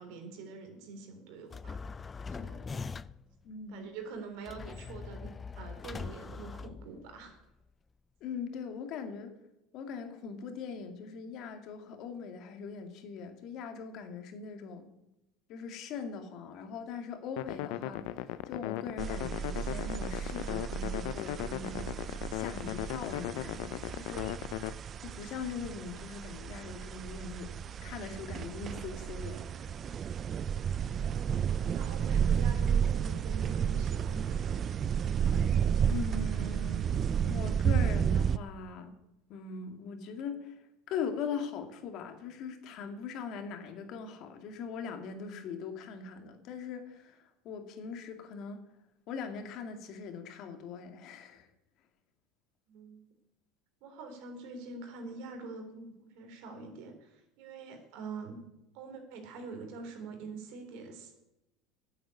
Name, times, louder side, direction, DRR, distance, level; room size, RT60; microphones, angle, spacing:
voice 1, 0.0-1.8 2.3-2.7 3.7-7.4 30.8-34.6 52.7-53.0 53.8-58.4 58.7-61.2, right 4 dB, 70° right, 5 dB, 3.6 m, -45 dB
sound 1, 1.5-3.3 4.5-7.3, left 5 dB, 25° left, 0.4 m, -42 dB
voice 2, 3.4-3.9 8.2-9.3 9.7-14.9 15.5-24.3 25.0-27.5 27.8-29.4 35.9-38.9 39.3-40.6 40.9-48.6 49.1-51.5, left 5 dB, 55° left, 6 dB, 2.2 m, -41 dB
sound 2, 17.4-24.7, left 14 dB, 75° left, 0.6 m, -37 dB
sound 3, 19.0-38.4, right 8 dB, 35° right, 0.4 m, -32 dB
10.5 x 7.8 x 9.5 m, 0.90 s
supercardioid pair, 105°, 0 cm